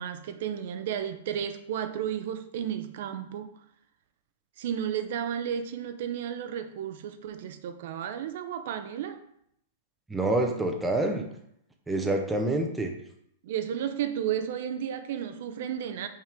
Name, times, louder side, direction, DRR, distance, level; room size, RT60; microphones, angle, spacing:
voice 1, 0.0-3.6 4.6-9.2 13.4-16.1, right 9 dB, 50° right, 0.5 m, -33 dB
voice 2, 10.1-11.3 11.9-12.9, right 2 dB, 5° right, 0.5 m, -27 dB
5.9 x 3.6 x 4.4 m
supercardioid pair, 170°, 0 cm